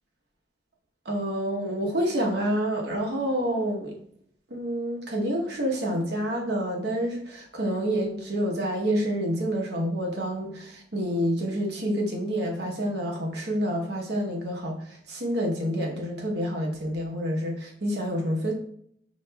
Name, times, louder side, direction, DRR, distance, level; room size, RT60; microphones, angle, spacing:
voice 1, 1.0-4.0 4.5-18.5, equal, 65° right, 0 dB, 0.9 m, -28 dB
5.0 x 3.8 x 2.2 m, 0.68 s
head